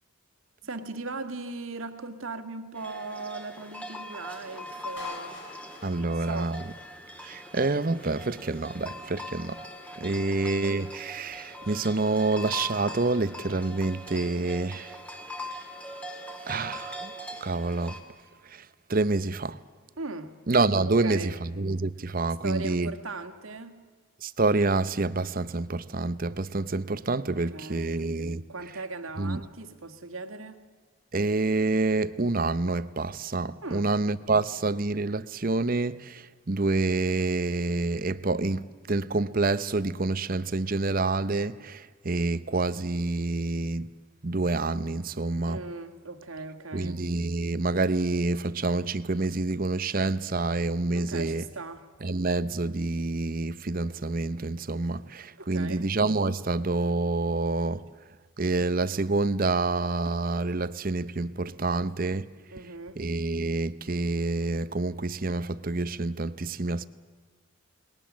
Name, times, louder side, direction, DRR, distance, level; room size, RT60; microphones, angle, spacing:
voice 1, 0.6-5.4 6.0-6.6 10.1-10.3 20.0-20.3 20.9-21.4 22.4-23.8 27.3-28.1 28.5-30.6 33.6-33.9 45.5-47.0 51.0-51.9 55.4-55.9 62.5-63.0, right 3 dB, 75° right, 1.9 m, -38 dB
sound 1, 2.7-18.0, left 1 dB, 5° left, 2.1 m, -41 dB
Clapping, 5.0-7.0, left 2 dB, 60° left, 4.4 m, -46 dB
voice 2, 5.8-6.6 7.2-9.7 10.0-15.0 16.5-17.1 17.4-18.0 18.4-19.6 20.5-22.9 24.2-28.5 29.2-29.4 31.1-43.9 44.2-45.6 46.7-51.4 52.0-57.9 58.4-62.3 63.0-66.9, right 3 dB, 40° right, 0.7 m, -27 dB
29.0 x 20.5 x 7.4 m
head